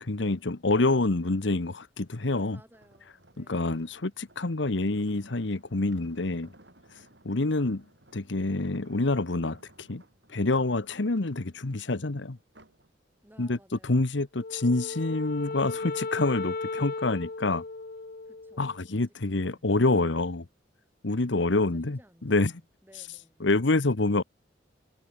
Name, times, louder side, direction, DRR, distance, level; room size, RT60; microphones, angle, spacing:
voice 1, 0.0-2.6 3.4-6.5 7.2-7.8 8.1-10.0 10.3-12.4 13.4-13.6 13.8-17.6 18.6-20.4 21.0-22.0 22.2-22.5 23.4-24.2, left 2 dB, 75° left, 1.1 m, -27 dB
voice 2, 2.5-4.0 13.2-14.1 18.2-20.2 21.5-23.4, equal, 10° right, 6.4 m, -60 dB
sound 1, 2.7-12.9 13.3-13.6, right 1 dB, 65° right, 7.9 m, -60 dB
Wind instrument woodwind instrument, 14.4-18.8, left 3 dB, 50° left, 0.7 m, -36 dB
head